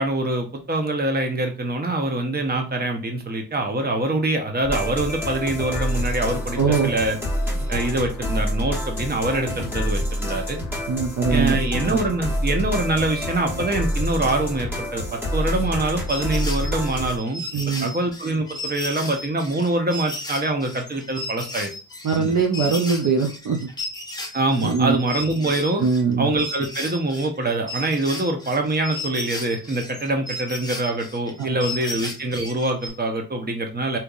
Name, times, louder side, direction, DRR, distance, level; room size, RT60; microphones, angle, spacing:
voice 1, 0.0-7.2 7.7-10.6 11.3-17.4 17.8-21.7 22.2-22.4 24.3-25.8 26.2-34.0, right 2 dB, 25° right, 4 dB, 0.9 m, -24 dB
sound 1, 4.6-17.2, equal, 5° right, 1.4 m, -27 dB
voice 2, 6.6-6.9 10.9-11.6 17.5-17.9 22.0-23.6 24.6-25.0 25.8-26.3 31.4-31.6, right 5 dB, 50° right, 1 dB, 0.6 m, -22 dB
sound 2, 15.8-26.1 26.4-32.9, left 1 dB, 10° left, 0.8 m, -34 dB
3.4 x 2.9 x 2.5 m, 0.33 s
cardioid pair, 75°, 40 cm